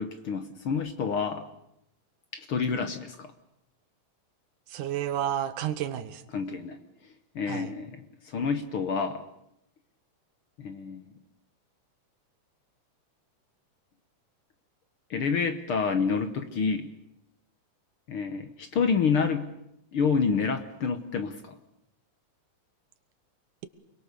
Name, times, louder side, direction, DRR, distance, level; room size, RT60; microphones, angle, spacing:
voice 1, 0.0-1.5 2.3-3.3 6.3-6.8 7.4-9.2 10.6-11.1 15.1-16.9 18.1-19.5 19.9-21.5, left 5 dB, 55° left, 9 dB, 1.7 m, -28 dB
voice 2, 4.7-6.2 7.5-7.8, right 11 dB, 85° right, 12 dB, 2.8 m, -31 dB
29.0 x 22.0 x 6.9 m, 0.80 s
omnidirectional pair, 3.5 m